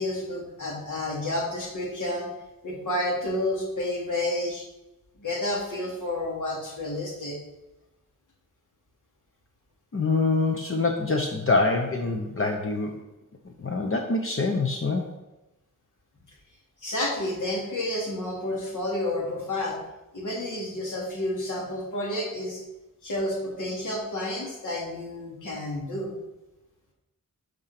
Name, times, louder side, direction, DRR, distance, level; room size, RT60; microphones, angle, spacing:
voice 1, 0.0-2.3 2.6-4.6 5.2-7.4 16.8-19.8 20.1-22.6 23.0-26.1, left 1 dB, 65° left, -3 dB, 3.4 m, -30 dB
voice 2, 9.9-12.9 13.6-15.1, left 3 dB, 40° left, 3 dB, 0.9 m, -25 dB
12.5 x 5.2 x 5.9 m, 0.99 s
wide cardioid pair, 180°, 33 cm